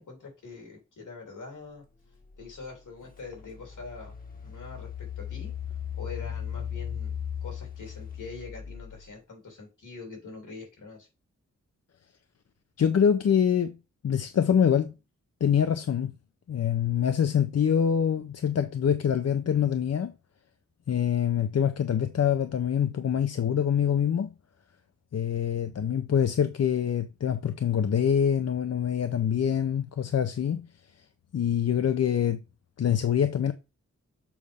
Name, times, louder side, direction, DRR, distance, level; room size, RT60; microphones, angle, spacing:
voice 1, 0.0-1.8 2.4-4.9 5.2-5.5 5.9-7.1 7.4-11.1, left 4 dB, 90° left, 3.3 m, -44 dB
Engine, 2.4-2.5 3.1-9.1, left 8 dB, 30° left, 1.3 m, -37 dB
voice 2, 12.8-13.8 14.0-14.9 15.4-16.1 16.5-20.1 20.9-24.3 25.1-30.7 31.0-31.1 31.3-32.4 32.8-33.5, left 8 dB, 55° left, 0.6 m, -25 dB
7.1 x 3.5 x 5.3 m
wide cardioid pair, 95°, 30 cm